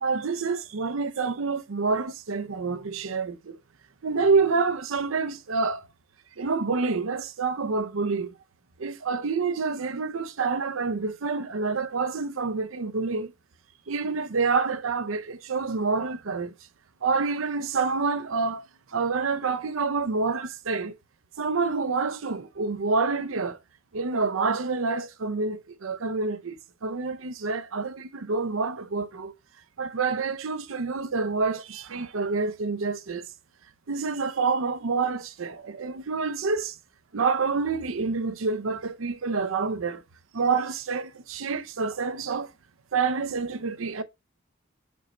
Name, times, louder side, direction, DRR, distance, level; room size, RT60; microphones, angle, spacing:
voice 1, 0.0-3.6 4.0-5.9 6.4-8.3 8.8-13.3 13.9-16.5 17.0-20.9 21.4-23.6 23.9-26.6 26.8-29.3 29.8-33.3 33.9-36.8 37.1-40.0 40.3-42.5 42.9-44.0, right 4 dB, 80° right, 0.7 m, -27 dB
5.3 x 4.4 x 4.1 m
head